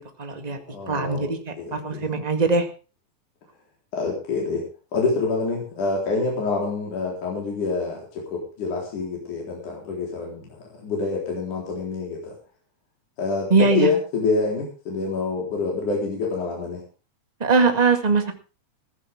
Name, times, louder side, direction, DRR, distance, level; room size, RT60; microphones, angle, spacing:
voice 1, 0.0-0.6 0.9-2.7 13.5-13.9 17.4-18.3, right 4 dB, 30° right, 6 dB, 0.7 m, -21 dB
voice 2, 0.7-1.3 1.6-2.1 3.9-4.6 4.9-12.3 13.2-16.8, left 3 dB, 55° left, -2 dB, 5.3 m, -26 dB
15.5 x 15.0 x 3.6 m, 0.34 s
omnidirectional pair, 4.2 m